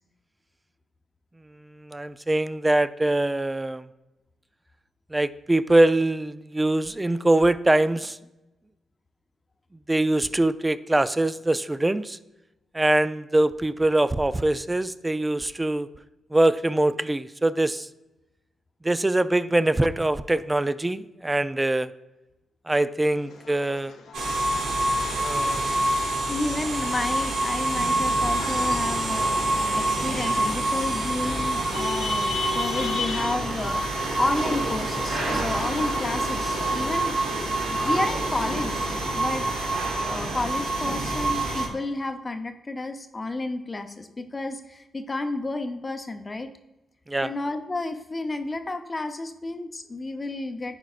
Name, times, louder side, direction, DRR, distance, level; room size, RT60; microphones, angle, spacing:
voice 1, 1.7-3.9 5.1-8.2 9.9-12.2 12.7-15.9 16.3-17.9 18.8-21.9 22.7-24.0 25.1-25.9 47.1-47.3, right 1 dB, 20° right, 15 dB, 0.3 m, -23 dB
sound 1, 23.1-38.2, left 5 dB, 80° left, 0.7 m, -38 dB
sound 2, 24.1-41.7, right 2 dB, 85° right, 1.4 m, -26 dB
voice 2, 26.3-29.4 29.7-33.8 34.2-37.1 37.6-39.4 40.0-46.5 47.2-50.8, left 2 dB, 30° left, 6 dB, 0.7 m, -31 dB
11.0 x 4.6 x 2.5 m, 0.99 s
cardioid pair, 65°, 0 cm